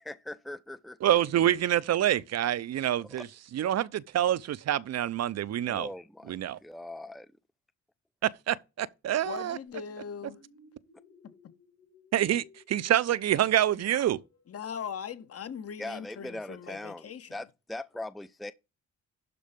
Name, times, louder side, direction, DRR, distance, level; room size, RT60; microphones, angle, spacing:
voice 1, 0.0-1.1 3.0-3.1 5.7-7.3 15.8-18.5, left 1 dB, ahead, 0.6 m, -41 dB
voice 2, 1.0-3.3 3.5-5.9 6.3-6.6 8.2-9.6 12.1-14.2, right 12 dB, 60° right, 0.7 m, -27 dB
voice 3, 9.2-10.4 11.2-11.3 14.5-17.4, left 7 dB, 50° left, 1.5 m, -40 dB
sound 1, 9.7-15.0, left 4 dB, 90° left, 5.5 m, -59 dB
12.0 x 4.3 x 5.2 m
cardioid pair, 90°, 30 cm